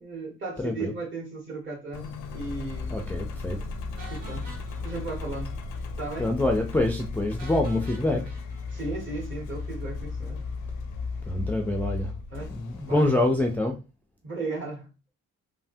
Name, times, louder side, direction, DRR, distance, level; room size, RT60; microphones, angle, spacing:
voice 1, 0.0-3.2 4.1-4.5 4.8-5.5 6.0-6.3 8.7-10.5 12.3-13.1 14.2-14.9, right 3 dB, 40° right, 1.4 m, -36 dB
voice 2, 0.6-0.9 2.9-3.6 6.2-8.2 11.3-12.1 12.5-13.8, left 1 dB, 5° left, 0.4 m, -26 dB
Engine, 1.9-13.6, left 4 dB, 90° left, 0.5 m, -35 dB
sound 1, 4.0-5.9 6.1-6.3 6.6-6.7 7.4-9.7, right 2 dB, 80° right, 1.1 m, -48 dB
3.2 x 2.0 x 2.6 m
cardioid pair, 90°, 30 cm